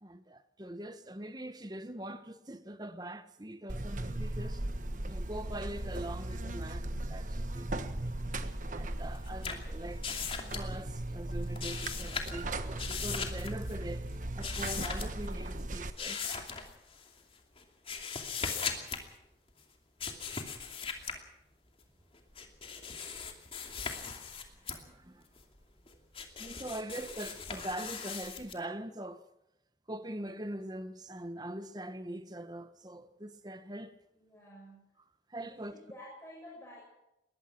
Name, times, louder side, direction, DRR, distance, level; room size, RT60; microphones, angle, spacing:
voice 1, 0.0-4.6 5.0-8.1 8.6-14.1 14.4-16.2 24.8-25.3 26.4-29.2 29.9-33.9 35.3-35.7, right 1 dB, 25° right, 1.2 m, -43 dB
Buzz, 3.7-15.9, right 1 dB, 45° right, 1.3 m, -37 dB
sound 1, 9.0-11.0 11.3-12.5 12.7-13.7 14.4-15.3 16.0-17.1 17.6-19.1 20.0-21.2 22.1-24.8 25.4-28.5, left 5 dB, 30° left, 2.7 m, -39 dB
voice 2, 34.1-34.8 35.5-36.8, equal, 15° left, 6.3 m, -51 dB
22.5 x 19.5 x 6.0 m
head